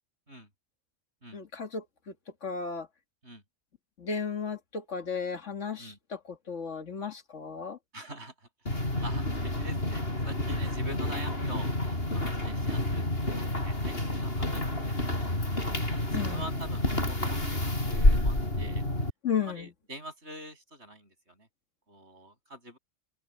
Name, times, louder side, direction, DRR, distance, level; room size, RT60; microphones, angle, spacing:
voice 1, 1.3-2.1 2.4-2.9 4.0-7.8 16.1-16.5 19.2-19.7, left 6 dB, 75° left, 2.1 m, -34 dB
voice 2, 7.9-15.3 15.9-18.8 19.4-21.5 21.9-22.8, right 1 dB, 65° right, 7.4 m, -46 dB
sound 1, 8.7-19.1, left 1 dB, 55° left, 6.4 m, -29 dB
omnidirectional pair, 1.2 m